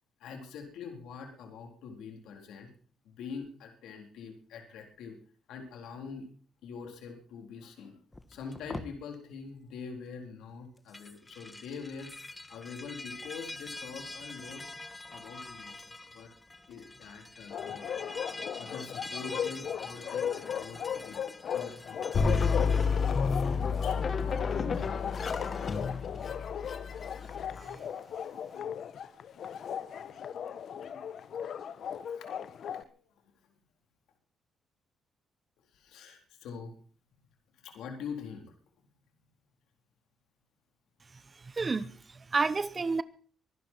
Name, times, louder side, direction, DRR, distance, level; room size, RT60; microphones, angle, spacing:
voice 1, 0.2-2.7 3.0-5.2 5.5-6.3 6.6-8.0 8.3-14.6 15.1-15.8 16.1-16.3 16.7-17.9 18.6-21.2 21.5-22.7 23.4-25.8 28.1-28.7 30.0-30.4 30.8-31.2 31.7-32.4 32.7-33.2 35.7-36.7 37.5-38.5, left 5 dB, 85° left, 4.0 m, -45 dB
sound 1, 8.1-8.9 10.8-22.9, left 2 dB, 15° left, 1.4 m, -45 dB
Bark, 17.5-32.8, left 8 dB, 65° left, 1.1 m, -37 dB
sound 2, 22.1-27.6, left 5 dB, 45° left, 2.0 m, -30 dB
voice 2, 41.4-43.0, right 4 dB, 30° right, 1.0 m, -31 dB
23.5 x 12.0 x 4.6 m
cardioid pair, 90°, 0 cm